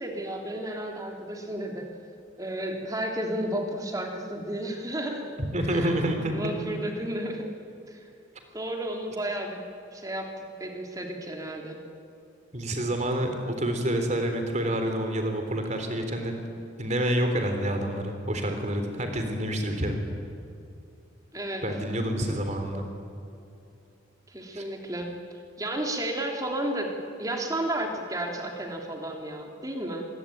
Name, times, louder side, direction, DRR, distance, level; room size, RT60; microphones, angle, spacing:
voice 1, 0.0-1.9 2.4-5.3 5.7-7.5 7.9-8.0 8.5-9.6 9.9-10.3 10.6-11.8 21.3-21.6 24.3-25.1 25.6-26.9 27.2-30.1, right 1 dB, 20° right, 2 dB, 3.2 m, -32 dB
voice 2, 5.4-6.5 12.5-16.4 16.8-20.0 21.6-22.8 24.5-24.6, right 1 dB, 35° right, 5 dB, 3.7 m, -28 dB
25.5 x 21.5 x 9.3 m, 2.6 s
head